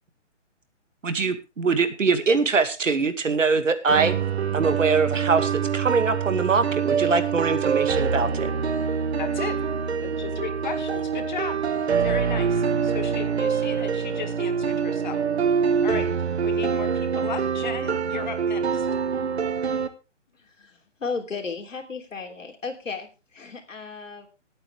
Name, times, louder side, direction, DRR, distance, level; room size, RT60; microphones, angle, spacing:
voice 1, 1.0-4.1 4.5-8.5, right 4 dB, 80° right, 10 dB, 2.2 m, -23 dB
sound 1, 3.9-19.9, right 6 dB, 55° right, 1.5 m, -25 dB
voice 2, 9.2-9.6 10.0-11.6 12.0-15.2 15.8-16.1 16.4-18.9, left 7 dB, 35° left, 8 dB, 2.1 m, -35 dB
voice 3, 20.5-24.3, left 4 dB, 85° left, 4 dB, 3.3 m, -35 dB
20.0 x 8.8 x 3.4 m, 0.30 s
hypercardioid pair, 165°, 37 cm